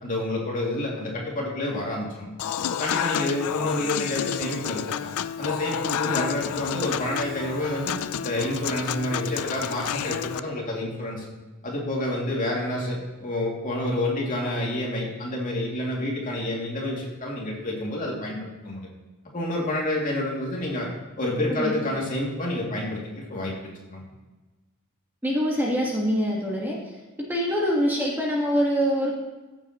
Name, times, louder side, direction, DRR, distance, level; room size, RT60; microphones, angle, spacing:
voice 1, 0.0-2.3 2.7-5.1 5.4-7.9 8.2-11.2 11.6-18.9 19.3-20.9 21.2-23.5 23.9-24.0, left 1 dB, 40° left, -3 dB, 2.5 m, -29 dB
Human voice / Acoustic guitar / Piano, 2.4-10.4, left 9 dB, 85° left, 0.4 m, -30 dB
voice 2, 25.2-26.8 27.3-29.1, equal, 10° right, -3 dB, 1.5 m, -24 dB
15.0 x 7.6 x 3.0 m, 1.2 s
head